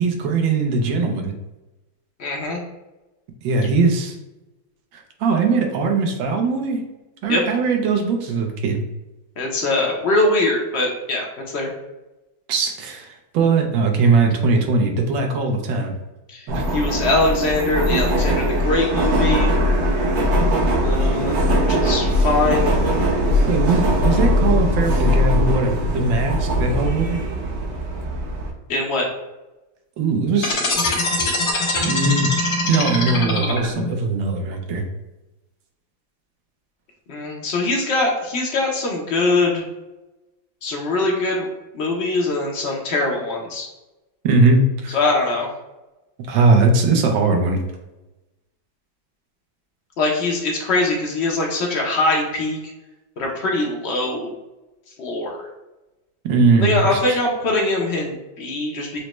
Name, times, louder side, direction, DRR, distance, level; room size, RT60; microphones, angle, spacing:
voice 1, 0.0-1.3 3.4-4.1 4.9-6.8 7.2-8.8 12.5-15.9 16.5-16.6 20.9-21.2 23.5-27.2 30.0-30.6 31.8-32.3 32.7-34.8 44.2-45.0 46.3-47.6 56.2-57.2, right 3 dB, 80° right, 3 dB, 1.4 m, -20 dB
voice 2, 2.2-2.6 7.3-7.4 9.4-11.7 16.3-19.5 20.8-22.7 28.7-29.1 37.1-39.6 40.6-41.5 41.7-43.7 44.9-45.5 50.0-52.6 53.2-54.3 55.0-55.5 56.6-59.0, left 2 dB, 75° left, -1 dB, 0.5 m, -22 dB
Subway metro underground, 16.5-28.5, equal, 55° right, 0.8 m, -20 dB
sound 1, 30.4-33.9, left 2 dB, 60° left, 1.4 m, -22 dB
6.3 x 2.1 x 3.0 m, 1.0 s
omnidirectional pair, 2.1 m